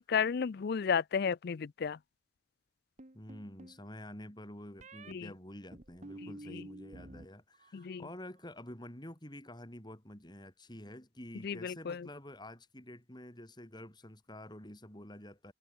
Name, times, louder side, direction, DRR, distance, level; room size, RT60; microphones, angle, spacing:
voice 1, 0.0-2.0 5.1-5.3 6.5-6.6 7.7-8.0 11.4-12.1, left 6 dB, 60° left, 0.4 m, -33 dB
sound 1, 3.0-3.8 4.8-5.1 5.7-7.3 7.5-8.1, right 1 dB, 40° right, 1.8 m, -50 dB
voice 2, 3.1-15.5, left 1 dB, 25° left, 5.7 m, -49 dB
head